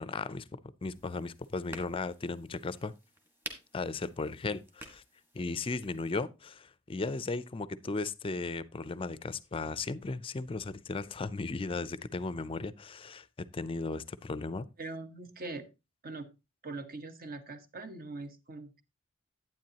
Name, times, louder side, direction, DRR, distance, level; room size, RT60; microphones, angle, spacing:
voice 1, 0.0-2.9 3.7-5.0 5.3-14.7, left 3 dB, 25° left, 0.4 m, -36 dB
sound 1, 0.8-6.1, equal, 10° right, 1.5 m, -50 dB
voice 2, 14.8-15.6 16.0-16.3 16.6-18.8, right 3 dB, 45° right, 1.0 m, -42 dB
10.5 x 9.1 x 2.8 m
head